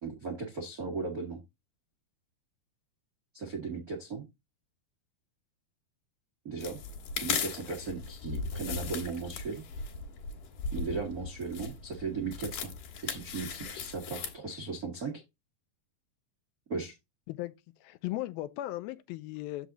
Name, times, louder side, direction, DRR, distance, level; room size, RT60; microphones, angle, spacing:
voice 1, 0.0-1.4 3.3-4.2 6.4-6.8 7.2-9.6 10.7-12.7 13.0-15.2 16.7-17.0, right 4 dB, 70° right, 0.8 m, -37 dB
sound 1, 6.6-14.3, left 5 dB, 65° left, 2.8 m, -38 dB
voice 2, 17.8-19.7, left 16 dB, 85° left, 2.5 m, -37 dB
7.0 x 6.0 x 3.8 m
omnidirectional pair, 4.3 m